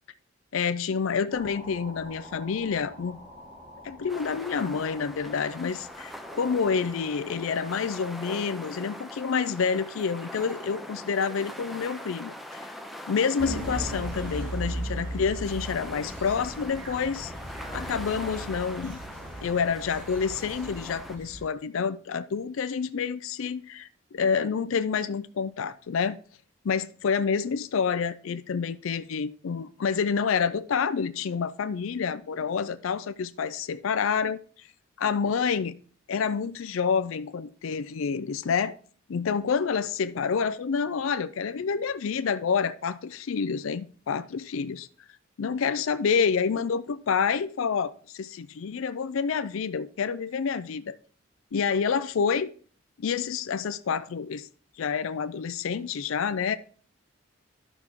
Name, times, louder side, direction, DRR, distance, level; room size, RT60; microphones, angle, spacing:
voice 1, 0.5-3.2 3.8-12.7 13.1-17.3 17.7-19.0 19.4-23.9 24.1-26.2 26.6-34.7 35.0-35.7 36.1-38.8 39.1-44.9 45.4-51.0 51.5-52.5 53.0-54.5 54.8-56.6, left 6 dB, 80° left, 0.4 m, -28 dB
sound 1, 1.3-8.1, equal, 20° right, 1.3 m, -48 dB
sound 2, 4.1-21.2, equal, ahead, 0.6 m, -42 dB
sound 3, 13.4-21.4, right 1 dB, 60° right, 3.2 m, -37 dB
12.0 x 6.0 x 3.6 m
head